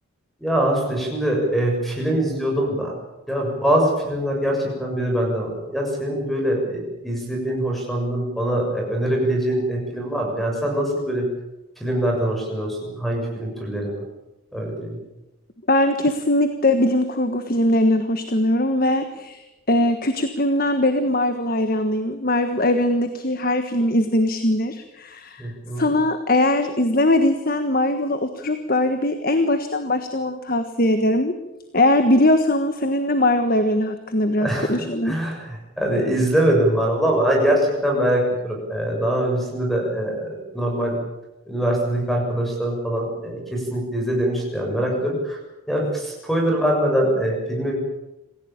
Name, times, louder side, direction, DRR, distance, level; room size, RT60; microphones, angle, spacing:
voice 1, 0.4-2.9 3.3-11.2 11.8-14.0 14.5-15.0 25.4-25.9 34.4-41.0 41.5-45.4 45.7-47.8, right 1 dB, ahead, 0 dB, 6.9 m, -23 dB
voice 2, 15.7-25.5 25.8-31.3 31.7-35.1, left 1 dB, 45° left, 8 dB, 1.5 m, -21 dB
26.5 x 16.0 x 8.9 m, 1.0 s
head